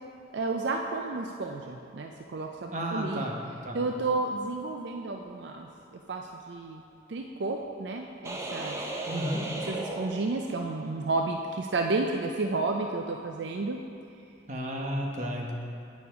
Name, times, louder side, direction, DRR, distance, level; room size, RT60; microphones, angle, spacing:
voice 1, 0.3-3.2 3.7-6.8 7.1-8.8 9.7-13.8, right 3 dB, 70° right, 3 dB, 0.4 m, -31 dB
voice 2, 2.7-3.4 3.6-3.8 9.1-9.4 14.5-15.5, equal, 40° right, -1 dB, 1.0 m, -32 dB
sound 1, 8.2-10.9, right 1 dB, 15° right, 0.6 m, -36 dB
8.4 x 7.0 x 5.0 m, 2.6 s
head